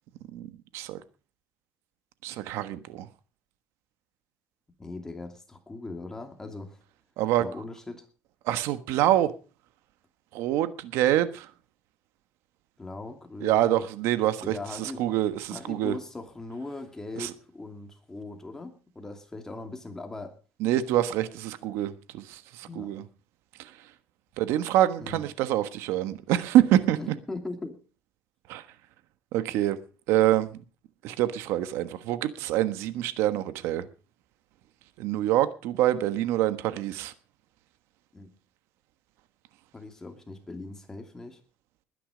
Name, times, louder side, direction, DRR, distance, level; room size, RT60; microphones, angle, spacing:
voice 1, 2.2-3.1 7.2-7.5 8.4-9.3 10.3-11.5 13.4-15.9 17.2-17.3 20.6-23.0 23.6-23.7 24.4-27.0 28.5-28.6 29.3-29.8 30.1-30.6 31.0-33.9 35.0-37.1, right 13 dB, 80° right, 1.3 m, -26 dB
voice 2, 4.8-6.8 7.4-8.1 12.8-13.9 14.4-15.0 15.5-20.4 22.7-22.9 25.0-25.3 27.0-27.8 38.1-38.3 39.7-41.4, left 2 dB, 10° left, 2.6 m, -40 dB
20.5 x 10.0 x 5.0 m
cardioid pair, 150°, 4 cm